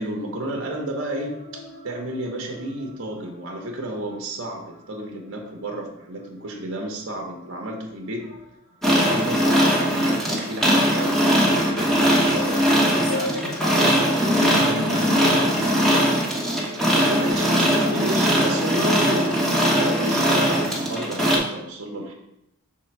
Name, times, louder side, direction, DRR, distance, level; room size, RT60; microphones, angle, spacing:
voice 1, 0.0-8.3 8.8-12.0 16.7-19.4 19.7-22.1, right 1 dB, 60° right, 1 dB, 0.8 m, -31 dB
sound 1, 1.1-3.7 4.0-4.4 4.7-5.0 5.6-5.7 6.9-7.0 7.8-7.9 8.1-9.2 9.7-10.0 10.5-10.6 11.2-20.9, left 2 dB, 75° left, 1.1 m, -38 dB
sound 2, 8.8-21.4, equal, ahead, 1.0 m, -20 dB
voice 2, 12.9-15.8, equal, 45° left, 3 dB, 0.9 m, -34 dB
5.9 x 3.8 x 4.5 m, 0.83 s
head